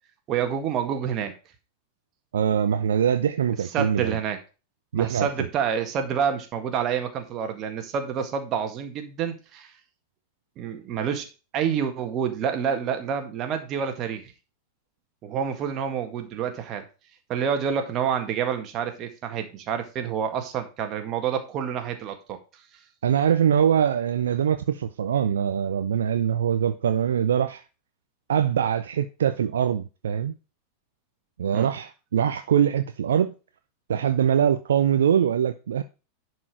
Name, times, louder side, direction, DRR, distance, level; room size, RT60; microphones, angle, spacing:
voice 1, 0.3-1.3 3.7-4.4 4.9-9.7 10.6-11.3 11.5-14.3 15.2-16.9 17.3-22.4 31.5-31.7, right 7 dB, 35° right, 1.8 m, -28 dB
voice 2, 2.3-4.2 4.9-5.5 23.0-27.6 28.3-30.3 31.4-33.3 33.9-35.8, right 8 dB, 65° right, 0.6 m, -23 dB
11.0 x 4.8 x 4.8 m
figure-of-eight pair, 90°, 0 cm